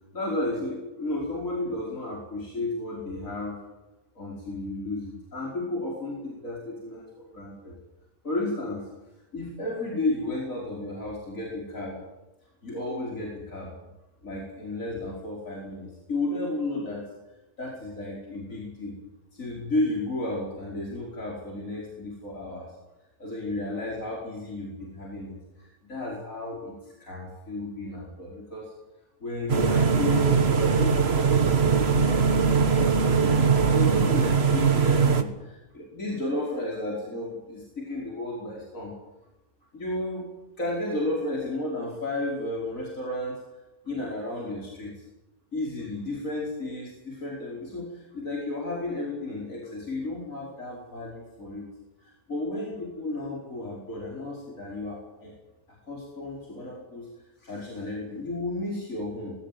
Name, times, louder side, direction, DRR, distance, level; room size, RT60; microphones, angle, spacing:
voice 1, 0.1-3.6 4.2-7.8 8.2-8.9 9.3-12.0 12.6-13.7 14.2-17.1 17.6-19.0 19.3-22.7 23.2-28.7 29.2-38.9 39.7-40.3 40.6-43.4 43.9-45.0 45.5-51.6 52.0-55.3 55.9-57.1 57.4-59.3, left 2 dB, 75° left, -3 dB, 5.6 m, -33 dB
sound 1, 29.5-35.2, right 5 dB, 50° right, 1.7 m, -21 dB
20.5 x 17.5 x 9.3 m, 0.98 s
omnidirectional pair, 1.4 m